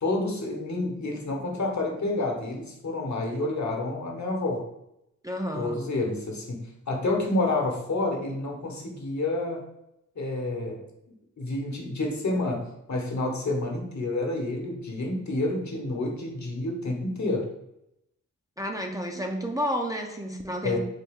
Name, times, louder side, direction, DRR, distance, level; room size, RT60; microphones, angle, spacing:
voice 1, 0.0-4.7 5.5-9.6 10.1-10.8 11.4-17.5 20.6-20.8, left 2 dB, 55° left, 2 dB, 1.0 m, -29 dB
voice 2, 5.2-5.8 18.6-20.8, equal, 10° right, 1 dB, 0.5 m, -31 dB
4.1 x 2.3 x 3.5 m, 0.84 s
cardioid pair, 45°, 33 cm